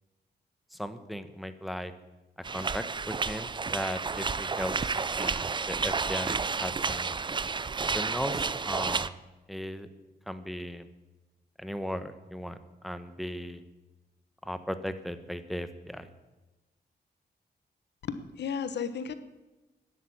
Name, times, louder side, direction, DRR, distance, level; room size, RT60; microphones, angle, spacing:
voice 1, 0.7-1.9 2.5-7.2 7.9-9.1 9.5-9.9 10.3-10.9 11.6-12.6 12.8-13.6 14.4-16.1, equal, ahead, 11 dB, 1.1 m, -37 dB
sound 1, 2.4-9.1, right 4 dB, 25° right, 0.5 m, -31 dB
voice 2, 18.0-19.1, left 6 dB, 90° left, 12 dB, 1.1 m, -34 dB
12.5 x 11.0 x 8.7 m, 1.1 s
wide cardioid pair, 100°, 17 cm